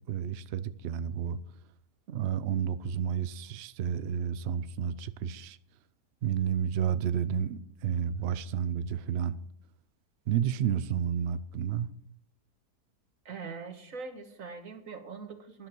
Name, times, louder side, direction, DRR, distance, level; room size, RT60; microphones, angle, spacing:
voice 1, 0.1-1.4 2.1-5.6 6.2-9.4 10.3-11.9, right 8 dB, 75° right, 0.5 m, -31 dB
voice 2, 13.2-15.7, right 4 dB, 55° right, 1.7 m, -42 dB
13.0 x 10.5 x 4.5 m
omnidirectional pair, 1.8 m